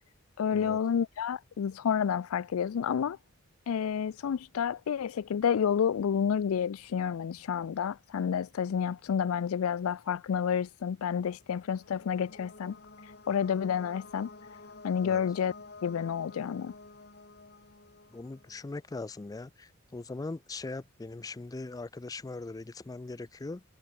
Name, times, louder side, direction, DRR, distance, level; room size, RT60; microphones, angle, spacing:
voice 1, 0.4-3.2 3.7-12.7 13.3-14.3 14.8-15.5 15.8-16.7, left 7 dB, 90° left, 0.4 m, -30 dB
sound 1, 11.2-18.9, left 3 dB, 50° left, 4.0 m, -51 dB
voice 2, 18.1-23.6, left 3 dB, 15° left, 0.3 m, -40 dB
head